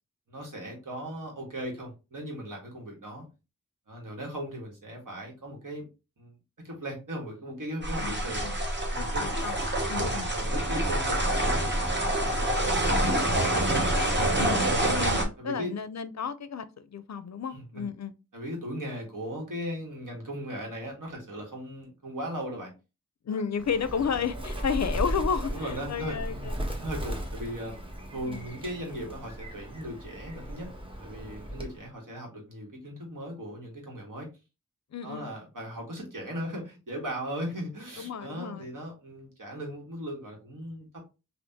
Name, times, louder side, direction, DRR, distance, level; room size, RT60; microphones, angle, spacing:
voice 1, 0.3-3.2 3.9-5.9 6.2-6.3 6.6-8.4 8.9-9.4 9.9-13.5 14.5-14.7 15.4-15.7 17.5-17.9 18.3-22.7 23.3-23.4 25.5-26.2 26.8-27.8 28.1-30.7 31.0-34.3 35.0-41.0, equal, 75° right, 1.3 m, -38 dB
sound 1, 7.8-15.2, right 1 dB, 35° right, 1.0 m, -26 dB
voice 2, 8.0-8.5 9.0-9.5 9.9-10.3 13.3-13.5 14.4-18.1 23.3-26.5 28.3-28.4 34.9-35.3 38.0-38.7, left 6 dB, 60° left, 0.4 m, -32 dB
Bird, 23.6-31.9, equal, 15° right, 0.9 m, -36 dB
3.5 x 2.5 x 2.7 m
wide cardioid pair, 45°, 32 cm